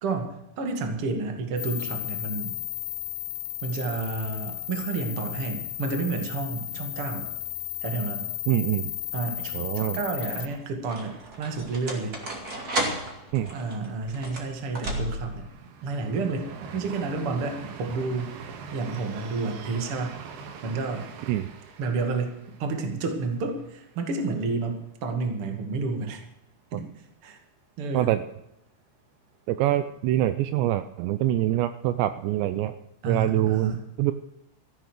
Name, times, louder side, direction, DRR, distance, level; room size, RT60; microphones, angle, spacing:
voice 1, 0.0-2.6 3.6-7.3 7.8-8.2 9.1-12.1 13.5-15.5 15.8-18.4 18.7-20.2 20.6-21.1 21.8-26.2 26.7-26.8 27.2-27.4 27.8-28.1 33.0-33.9, right 4 dB, 40° right, 4 dB, 2.3 m, -30 dB
sound 1, 1.6-10.5, left 14 dB, 70° left, 2.5 m, -34 dB
voice 2, 8.5-8.9 9.5-10.0 13.3-13.5 21.3-21.5 27.9-28.2 29.5-32.7 33.1-33.7 34.0-34.1, right 14 dB, 80° right, 11 dB, 2.7 m, -24 dB
sound 2, 8.6-9.1 10.0-15.5, right 1 dB, 25° right, 2.4 m, -34 dB
sound 3, 11.0-24.7 25.1-25.2 25.5-26.1, right 6 dB, 65° right, 3.4 m, -45 dB
14.5 x 10.5 x 6.5 m, 0.85 s
omnidirectional pair, 5.3 m